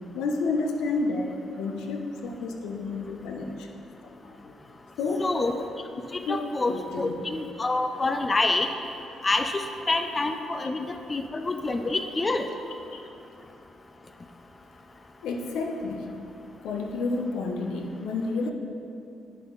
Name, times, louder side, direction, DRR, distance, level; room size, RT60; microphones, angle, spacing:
voice 1, 0.1-3.7 4.4-4.6 5.0-5.3 6.2-7.1 15.2-16.2 16.6-18.5, left 3 dB, 85° left, 3 dB, 0.8 m, -30 dB
voice 2, 5.2-5.6 6.1-8.7 9.2-12.5, left 2 dB, 25° left, 7 dB, 0.4 m, -27 dB
9.7 x 6.2 x 3.9 m, 2.7 s
cardioid pair, 90°, 0 cm